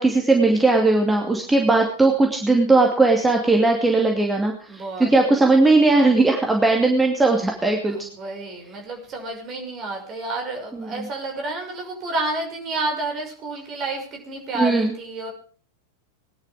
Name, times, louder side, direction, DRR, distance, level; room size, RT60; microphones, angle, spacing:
voice 1, 0.0-8.1 10.7-10.9 14.5-14.9, right 3 dB, 10° right, 1 dB, 2.6 m, -18 dB
voice 2, 4.7-5.1 7.8-15.3, right 2 dB, 30° right, 3 dB, 6.2 m, -30 dB
20.5 x 11.0 x 5.1 m, 0.41 s
figure-of-eight pair, 90°, 0 cm